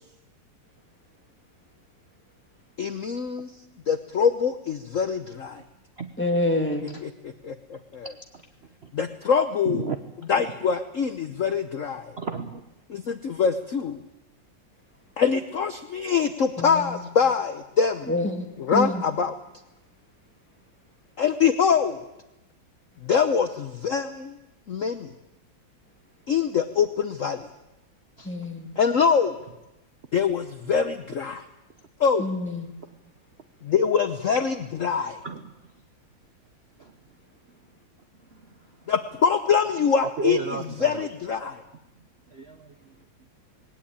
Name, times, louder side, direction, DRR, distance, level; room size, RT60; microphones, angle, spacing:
voice 1, 2.8-3.5 3.9-5.6 7.0-8.1 8.9-9.9 10.3-12.1 12.9-14.0 15.2-18.1 18.6-19.3 21.2-22.1 23.0-24.4 24.7-25.1 26.3-27.4 28.8-29.4 30.1-31.4 32.0-32.3 33.6-35.2 38.9-41.5, left 6 dB, 50° left, 8 dB, 1.0 m, -24 dB
voice 2, 6.2-6.8 16.6-17.0 18.1-19.0 28.2-28.7 32.2-32.7, left 1 dB, 5° left, 2 dB, 2.4 m, -27 dB
voice 3, 9.6-10.0 12.2-12.6 28.2-28.3 28.7-28.8 34.3-34.4 35.2-35.5 36.8-36.9 40.2-41.0 42.3-42.9, right 5 dB, 45° right, 7 dB, 1.0 m, -33 dB
20.0 x 17.5 x 8.7 m, 0.96 s
omnidirectional pair, 2.1 m